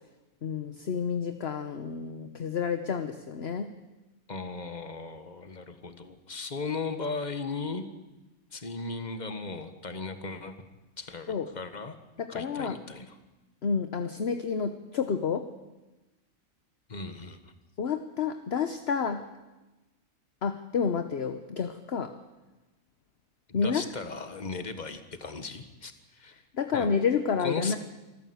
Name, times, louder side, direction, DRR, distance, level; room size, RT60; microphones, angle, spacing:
voice 1, 0.4-3.7 11.3-11.5 12.2-12.8 13.6-15.5 17.8-19.3 20.4-22.1 23.5-23.8 26.5-27.8, left 6 dB, 50° left, 8 dB, 1.2 m, -29 dB
voice 2, 4.3-7.8 8.5-10.6 11.0-12.0 12.3-13.2 16.9-17.5 23.5-26.4 26.7-26.9 27.4-27.8, left 4 dB, 30° left, 8 dB, 1.6 m, -37 dB
25.5 x 14.0 x 8.0 m, 1.1 s
omnidirectional pair, 1.4 m